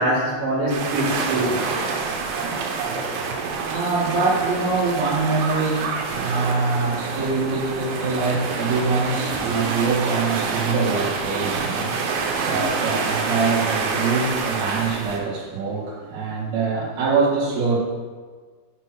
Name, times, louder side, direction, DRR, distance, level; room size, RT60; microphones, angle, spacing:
voice 1, 0.0-1.6 9.5-9.7 12.5-12.7, right 1 dB, 70° right, -7 dB, 3.7 m, -24 dB
sound 1, 0.7-15.2, right 4 dB, 85° right, 3.0 m, -27 dB
voice 2, 3.3-17.8, right 4 dB, 50° right, -9 dB, 3.2 m, -24 dB
9.3 x 3.4 x 6.0 m, 1.5 s
omnidirectional pair, 4.6 m